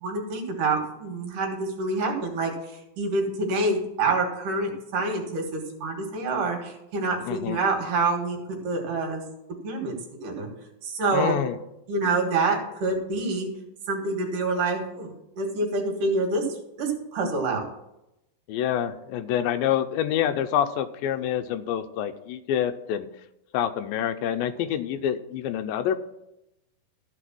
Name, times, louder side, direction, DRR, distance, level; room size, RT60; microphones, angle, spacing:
voice 1, 0.0-9.2 9.6-10.5 10.8-11.4 11.9-13.5 13.9-16.4 16.8-17.6, right 3 dB, 65° right, 3 dB, 3.1 m, -27 dB
voice 2, 7.3-7.6 11.1-11.6 18.5-23.1 23.5-26.0, left 10 dB, 85° left, 11 dB, 2.3 m, -27 dB
13.5 x 5.0 x 6.1 m, 0.87 s
omnidirectional pair, 4.2 m